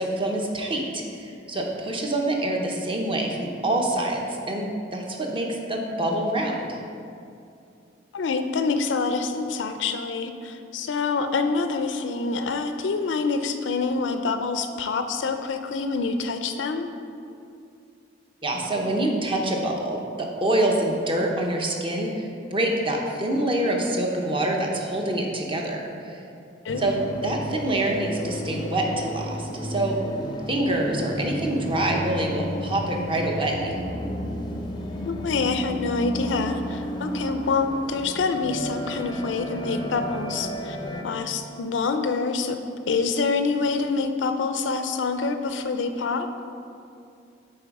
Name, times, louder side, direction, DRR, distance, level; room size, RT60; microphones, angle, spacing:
voice 1, 0.0-6.8 18.4-26.2 26.8-27.0 27.2-30.0 30.5-33.8, right 1 dB, 30° right, 0 dB, 0.8 m, -26 dB
voice 2, 8.1-16.9 26.6-26.9 35.0-40.8 41.0-42.6 42.9-46.3, left 4 dB, 75° left, 7 dB, 0.4 m, -26 dB
sound 1, 26.7-41.0, equal, 25° left, 0.5 m, -32 dB
7.7 x 3.9 x 4.7 m, 2.5 s
head